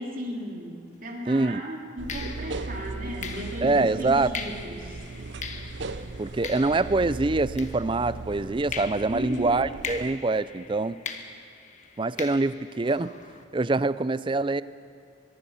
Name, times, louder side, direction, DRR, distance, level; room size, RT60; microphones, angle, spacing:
voice 1, 0.0-5.0 9.1-9.5, equal, 45° right, -1 dB, 3.1 m, -35 dB
sound 1, 0.9-1.2 2.1-8.3 8.7-13.4, left 5 dB, 40° left, 1.4 m, -41 dB
voice 2, 1.3-1.6 3.6-4.3 6.2-11.0 12.0-13.1 13.5-14.6, right 3 dB, 25° right, 16 dB, 0.4 m, -25 dB
sound 2, 2.0-10.1, right 3 dB, 65° right, 0.7 m, -37 dB
23.5 x 22.5 x 5.7 m, 2.5 s
head